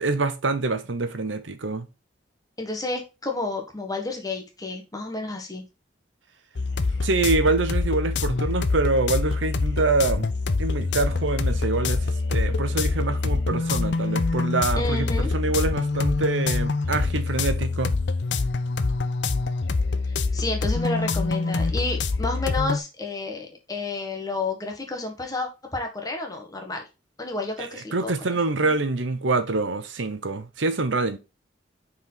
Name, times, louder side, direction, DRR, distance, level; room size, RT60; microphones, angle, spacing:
voice 1, 0.0-1.9 7.0-10.3 10.6-17.9 27.6-31.2, right 3 dB, 85° right, 0.9 m, -25 dB
voice 2, 2.6-5.6 14.8-15.3 20.3-26.8 27.2-28.1 28.6-28.7, left 3 dB, 20° left, 1.5 m, -30 dB
sound 1, 6.6-22.8, left 3 dB, 65° left, 0.6 m, -25 dB
5.8 x 4.8 x 4.0 m
head